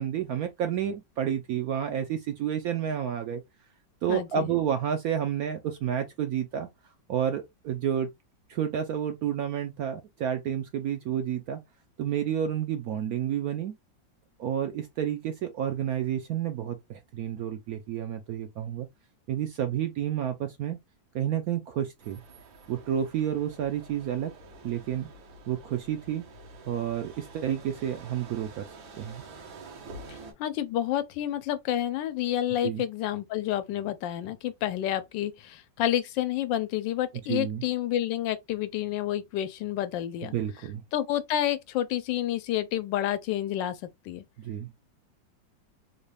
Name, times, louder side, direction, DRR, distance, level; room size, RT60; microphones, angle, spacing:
voice 1, 0.0-3.4 4.0-6.7 7.1-8.1 8.5-11.6 12.0-13.7 14.4-18.9 19.3-20.8 21.1-22.2 22.7-24.3 24.6-25.1 25.5-26.2 26.7-28.6 28.9-29.2 32.6-32.8 37.3-37.6 40.3-40.8 44.4-44.7, right 9 dB, 70° right, 0.9 m, -30 dB
voice 2, 4.1-4.5 30.1-40.3 40.9-44.2, left 12 dB, 80° left, 1.3 m, -29 dB
sound 1, 22.0-30.3, right 3 dB, 85° right, 1.8 m, -48 dB
3.9 x 2.3 x 3.3 m
omnidirectional pair, 2.0 m